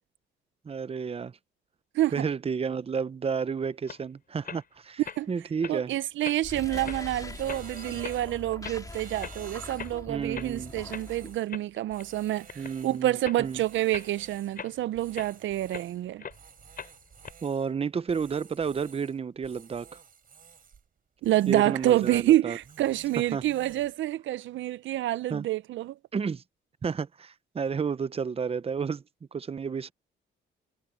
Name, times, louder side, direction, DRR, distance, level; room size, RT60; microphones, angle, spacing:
voice 1, 0.6-1.3 2.1-5.0 5.3-5.9 10.1-10.7 12.6-13.6 17.4-19.9 21.5-22.6 23.3-23.4 25.3-25.5 26.1-26.4 26.8-29.0 29.3-29.9, right 6 dB, 30° right, 0.8 m, -31 dB
sound 1, 3.9-4.0 4.4-4.7 5.1-5.2 5.6-5.8 6.2-6.5 6.8-7.0 7.5-7.6 8.0-8.2 8.6-8.8 9.2-9.4 9.7-10.0 10.3-10.5 10.9-11.1 11.5-12.1 12.5-12.8 13.2-13.4 13.9-14.1 14.6-15.9 16.2-16.4 16.8-17.3, left 6 dB, 45° left, 5.1 m, -40 dB
voice 2, 5.7-16.2 21.2-25.9, right 14 dB, 75° right, 0.5 m, -28 dB
sound 2, 6.4-11.4, left 2 dB, 15° left, 3.0 m, -42 dB
sound 3, 7.3-8.5 8.8-10.0 10.4-11.5 11.9-13.1 13.4-14.6 14.9-16.0 16.3-17.7 18.1-19.2 19.4-20.9 21.2-22.4 22.6-23.9, right 6 dB, 45° right, 4.4 m, -52 dB
cardioid pair, 90°, 20 cm